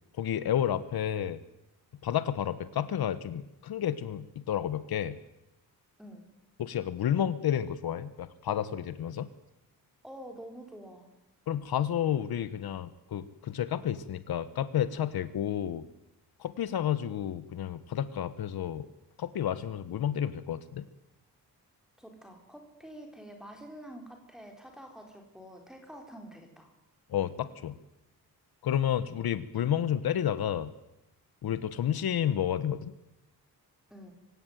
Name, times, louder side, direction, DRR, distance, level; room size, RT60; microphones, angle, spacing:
voice 1, 0.2-1.4 2.0-5.2 6.6-9.3 11.5-15.9 16.4-18.9 19.2-20.8 27.1-27.8 28.6-30.7 31.4-32.9, left 10 dB, 75° left, 14 dB, 1.2 m, -31 dB
voice 2, 10.0-11.1 22.0-26.7 33.9-34.1, right 1 dB, ahead, 3 dB, 4.1 m, -47 dB
24.0 x 17.0 x 9.3 m, 0.90 s
wide cardioid pair, 180°, 38 cm